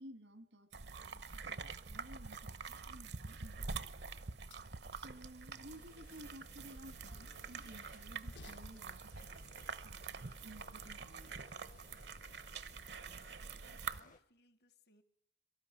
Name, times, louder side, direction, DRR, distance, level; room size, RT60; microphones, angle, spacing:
voice 1, 0.0-4.2 4.9-11.4, right 1 dB, 85° right, 10 dB, 2.0 m, -56 dB
sound 1, 0.7-14.0, right 4 dB, 70° right, 0.9 m, -46 dB
Train, 3.1-10.8, left 2 dB, 80° left, 1.1 m, -65 dB
sound 2, 5.6-14.2, left 3 dB, 45° left, 0.8 m, -64 dB
voice 2, 12.7-15.0, left 3 dB, 65° left, 12 dB, 1.3 m, -67 dB
24.0 x 13.5 x 10.0 m, 0.69 s
head